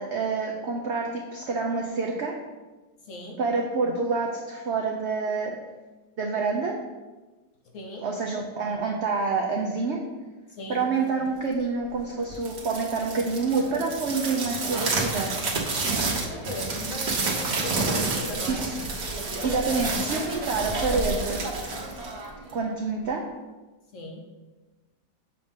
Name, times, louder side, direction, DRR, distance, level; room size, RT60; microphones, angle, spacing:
voice 1, 0.0-2.4 3.4-5.6 6.2-6.7 8.0-10.0 10.7-15.3 18.5-18.6 19.4-21.4 22.5-23.2, right 4 dB, 80° right, 1 dB, 0.6 m, -27 dB
voice 2, 3.1-3.4 7.7-8.1 10.5-10.9 16.2-18.7 23.9-24.2, left 1 dB, 60° left, 1 dB, 0.9 m, -38 dB
sound 1, 12.3-22.6, right 3 dB, 45° right, 1.1 m, -29 dB
7.1 x 2.5 x 5.3 m, 1.2 s
omnidirectional pair, 1.8 m